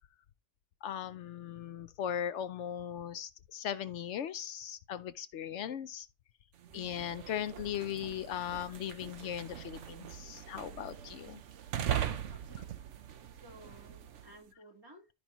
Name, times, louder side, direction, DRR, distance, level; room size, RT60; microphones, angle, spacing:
voice 1, 0.8-6.1 6.7-11.4, left 10 dB, 75° left, 0.9 m, -38 dB
sound 1, 6.6-14.4, right 10 dB, 85° right, 1.1 m, -40 dB
voice 2, 12.3-12.7 13.4-15.1, right 1 dB, 20° right, 1.5 m, -56 dB
12.5 x 5.2 x 3.0 m
omnidirectional pair, 1.2 m